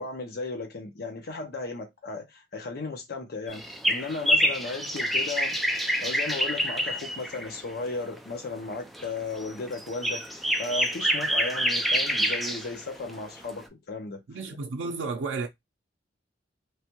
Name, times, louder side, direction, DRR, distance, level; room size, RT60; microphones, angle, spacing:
voice 1, 0.0-14.4, left 3 dB, 60° left, 0.6 m, -35 dB
sound 1, 3.5-7.6 8.7-9.1 9.4-12.8 13.1-13.2 13.5-13.6, equal, ahead, 0.4 m, -27 dB
voice 2, 14.3-15.5, right 4 dB, 85° right, 0.4 m, -32 dB
3.1 x 2.1 x 2.9 m
head